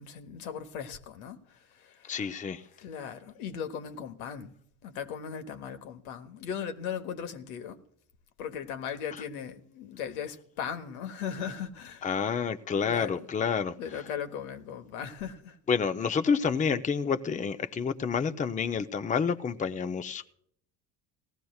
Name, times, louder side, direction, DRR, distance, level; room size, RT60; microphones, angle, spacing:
voice 1, 0.0-1.4 2.8-4.5 4.8-7.8 8.4-12.0 12.8-13.2 13.8-15.3, left 7 dB, 85° left, 1.2 m, -37 dB
voice 2, 2.1-2.6 9.1-9.3 12.0-14.1 15.7-20.3, left 6 dB, 20° left, 0.6 m, -29 dB
18.0 x 15.0 x 2.3 m
supercardioid pair, 85°, 41 cm